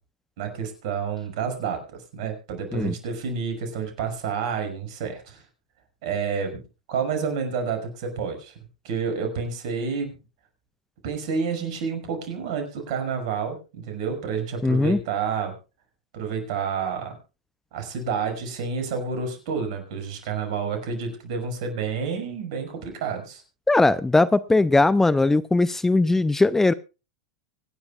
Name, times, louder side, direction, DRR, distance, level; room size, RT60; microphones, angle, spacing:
voice 1, 0.4-5.4 6.0-6.6 6.9-8.5 8.8-10.2 11.0-15.5 16.1-17.2 17.7-23.4, right 6 dB, 60° right, 6 dB, 6.0 m, -29 dB
voice 2, 14.6-15.0 23.7-26.7, left 2 dB, 10° left, 17 dB, 0.5 m, -19 dB
25.0 x 10.5 x 2.4 m, 0.31 s
hypercardioid pair, 95°, 4 cm